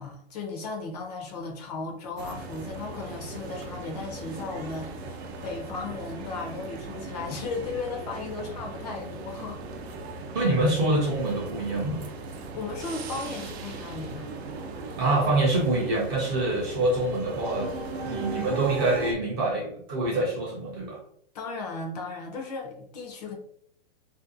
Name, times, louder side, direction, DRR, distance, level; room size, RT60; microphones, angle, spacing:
voice 1, 0.0-9.6 12.5-14.3 21.3-23.3, left 3 dB, 40° left, 2 dB, 0.5 m, -36 dB
sound 1, 2.2-19.1, right 3 dB, 75° right, 0.6 m, -38 dB
voice 2, 10.3-12.0 15.0-17.7 18.0-21.0, right 2 dB, 20° right, -3 dB, 0.4 m, -25 dB
2.5 x 2.2 x 2.5 m, 0.69 s
hypercardioid pair, 160°, 32 cm